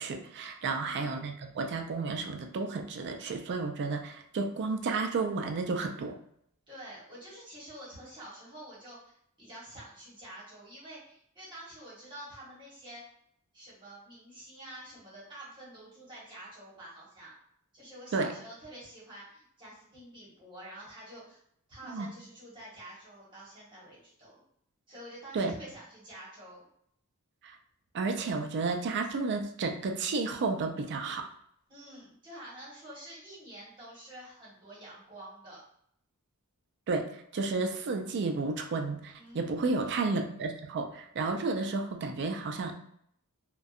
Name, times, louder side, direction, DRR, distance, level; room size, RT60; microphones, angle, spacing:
voice 1, 0.0-6.2 18.1-18.3 21.9-22.1 25.3-25.6 27.4-27.6 27.9-31.3 36.9-42.7, right 3 dB, 50° right, 5 dB, 0.4 m, -32 dB
voice 2, 0.6-1.2 6.7-13.0 13.5-17.4 17.7-21.4 21.7-24.4 24.9-26.7 31.7-35.6 39.2-39.8, right 1 dB, 20° right, -8 dB, 1.1 m, -48 dB
2.6 x 2.2 x 2.4 m, 0.69 s
head